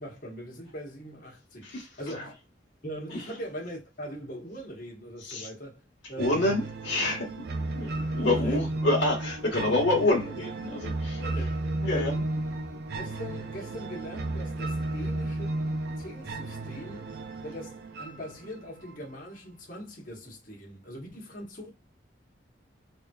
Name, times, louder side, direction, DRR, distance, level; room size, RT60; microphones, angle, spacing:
voice 1, 0.0-2.3 2.8-5.8 6.1-6.6 8.2-8.9 9.4-9.5 11.1-12.5 13.0-15.6 16.0-17.1 17.4-21.7, equal, 45° left, 1.2 m, -41 dB
voice 2, 6.2-7.3 7.7-11.2 11.8-12.1, left 2 dB, 70° left, 1.3 m, -27 dB
sound 1, 6.2-19.2, right 2 dB, 55° right, 0.5 m, -33 dB
3.5 x 2.8 x 2.3 m
head